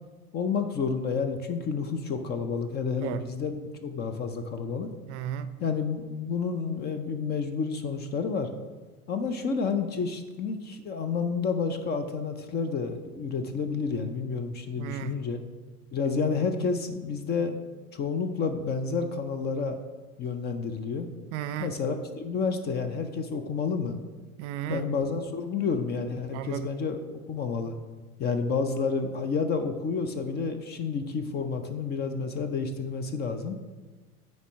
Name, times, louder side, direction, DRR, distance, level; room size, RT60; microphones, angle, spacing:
voice 1, 0.3-4.9 5.6-8.5 9.1-15.4 15.9-17.6 17.9-19.8 20.2-21.1 21.6-24.0 24.7-27.7 28.2-33.6, left 5 dB, 25° left, 8 dB, 0.4 m, -30 dB
voice 2, 5.1-5.5 14.8-15.2 21.3-21.7 24.4-24.8 26.3-26.7, right 10 dB, 50° right, 12 dB, 0.5 m, -34 dB
9.2 x 3.1 x 5.9 m, 1.3 s
figure-of-eight pair, 80°, 44 cm